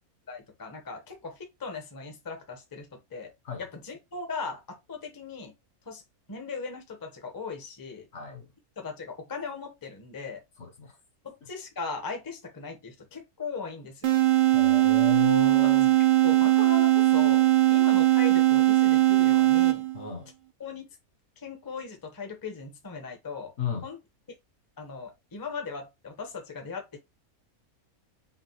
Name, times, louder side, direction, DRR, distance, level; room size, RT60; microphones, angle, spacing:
voice 1, 0.3-3.3 3.6-5.5 5.9-6.0 6.3-8.0 8.8-10.4 11.2-14.2 15.6-15.7 16.2-17.4 17.7-19.8 20.6-20.8 21.4-23.5 23.8-24.0 24.8-27.0, left 4 dB, 20° left, 0.7 m, -38 dB
voice 2, 8.1-8.5 10.6-11.0 14.5-15.9 19.9-20.3 23.6-23.9, left 7 dB, 55° left, 1.2 m, -34 dB
sound 1, 14.0-20.1, right 16 dB, 65° right, 0.5 m, -20 dB
5.5 x 2.3 x 2.9 m
omnidirectional pair, 1.5 m